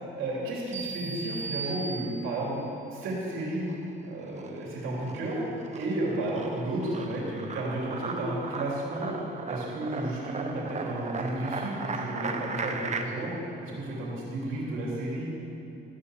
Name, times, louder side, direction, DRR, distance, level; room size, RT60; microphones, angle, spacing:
voice 1, 0.2-2.5 2.9-3.7 4.0-5.4 5.7-9.2 9.5-13.3 13.6-15.3, right 1 dB, 90° right, -4 dB, 3.2 m, -32 dB
sound 1, 0.7-2.5, right 4 dB, 60° right, 3.2 m, -37 dB
sound 2, 3.1-3.9 4.2-13.0, right 4 dB, 35° right, 0.9 m, -37 dB
13.5 x 5.7 x 8.2 m, 2.8 s
cardioid pair, 90°, 20 cm